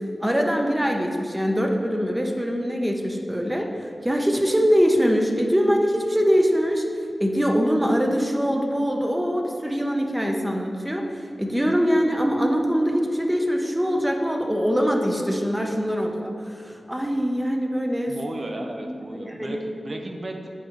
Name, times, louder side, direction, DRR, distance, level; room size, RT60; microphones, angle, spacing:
voice 1, 0.2-6.9 7.2-18.2 18.8-19.6, equal, 10° right, 2 dB, 0.7 m, -23 dB
voice 2, 18.1-20.5, right 1 dB, 55° right, 3 dB, 0.6 m, -35 dB
8.5 x 4.1 x 3.0 m, 2.4 s
cardioid pair, 40°, 0 cm